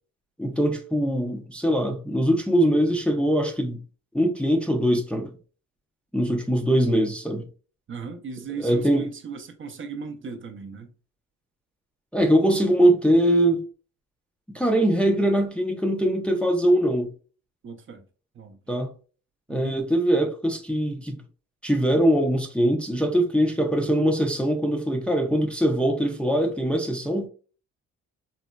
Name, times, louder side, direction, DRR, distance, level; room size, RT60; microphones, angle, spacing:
voice 1, 0.4-3.8 4.1-5.3 6.1-7.5 8.6-9.1 12.1-13.6 14.5-17.1 18.7-18.9 19.5-21.2 21.6-27.3, right 1 dB, 5° left, 0.5 m, -22 dB
voice 2, 7.9-10.9 17.6-18.0 18.3-18.6 19.5-19.8, right 5 dB, 40° right, 0.6 m, -37 dB
3.9 x 2.1 x 2.2 m
cardioid pair, 90°, 30 cm